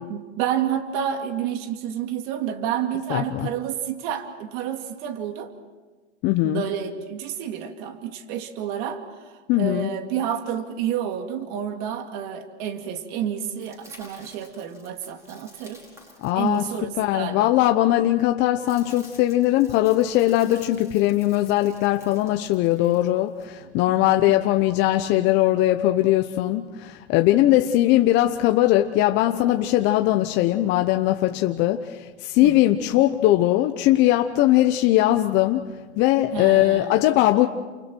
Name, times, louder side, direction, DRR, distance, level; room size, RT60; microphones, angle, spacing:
voice 1, 0.1-5.5 6.4-9.0 9.6-15.8 16.4-17.5 22.7-23.1 23.9-24.2 31.3-31.4 32.4-32.6 36.3-37.0, right 9 dB, 45° right, 6 dB, 2.4 m, -30 dB
voice 2, 3.1-3.5 6.2-6.6 9.5-9.9 16.2-16.7 17.0-35.6 36.0-37.5, left 15 dB, 35° left, 6 dB, 0.9 m, -20 dB
sound 1, 13.6-17.3 18.2-23.5, left 1 dB, 10° right, 5.4 m, -51 dB
29.5 x 28.5 x 4.6 m, 1.3 s
hypercardioid pair, 135°, 33 cm